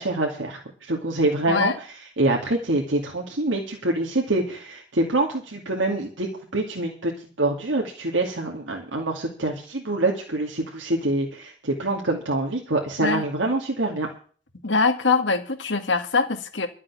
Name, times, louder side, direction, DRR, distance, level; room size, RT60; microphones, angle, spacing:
voice 1, 0.0-1.9 2.2-7.1 7.4-14.1, right 2 dB, 85° right, 2.5 m, -25 dB
voice 2, 14.6-16.7, left 4 dB, 80° left, 2.1 m, -23 dB
12.5 x 7.4 x 8.4 m
head